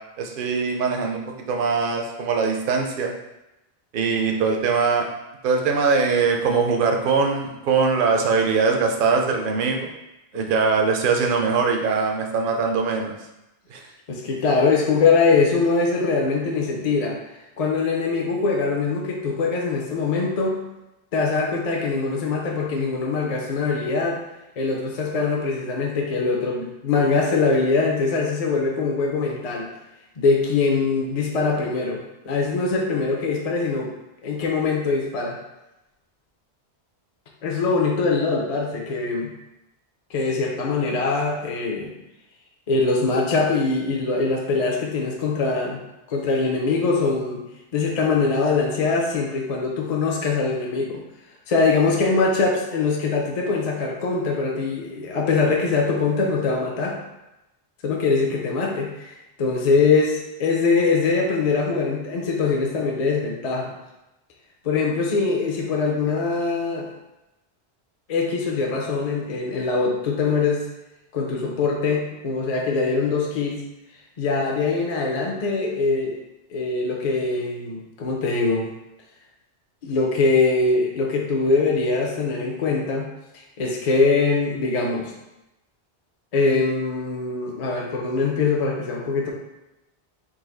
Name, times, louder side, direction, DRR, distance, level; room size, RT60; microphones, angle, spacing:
voice 1, 0.2-3.1 3.9-5.1 5.4-9.9 10.3-13.2 13.7-13.8, right 5 dB, 60° right, 3 dB, 0.7 m, -22 dB
voice 2, 14.1-17.2 17.6-20.6 21.1-24.2 24.6-29.7 30.2-33.9 34.2-35.4 37.4-39.3 40.1-42.0 42.7-45.8 46.1-47.4 47.7-51.0 51.5-57.0 57.8-59.1 59.4-63.7 64.6-66.9 68.1-70.7 71.1-73.6 74.2-76.2 76.5-78.7 79.8-83.1 83.6-85.1 86.3-89.3, left 4 dB, 45° left, -1 dB, 0.6 m, -22 dB
4.0 x 2.6 x 3.8 m, 0.94 s
omnidirectional pair, 1.1 m